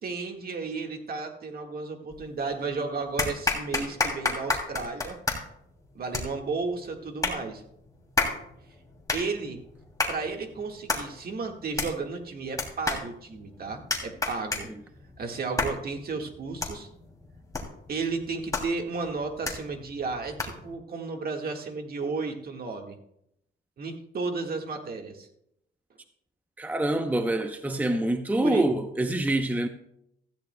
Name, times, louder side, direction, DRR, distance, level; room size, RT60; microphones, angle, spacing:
voice 1, 0.0-5.2 5.9-7.6 9.1-9.6 10.1-14.7 15.2-16.9 17.9-22.9 23.8-25.3 28.4-28.6, right 4 dB, 50° right, 1.7 m, -33 dB
sound 1, 2.1-2.6 3.2-20.7, left 3 dB, 15° left, 2.7 m, -33 dB
voice 2, 26.6-29.7, right 1 dB, 10° right, 0.7 m, -26 dB
15.5 x 14.0 x 2.2 m
cardioid pair, 90°, 20 cm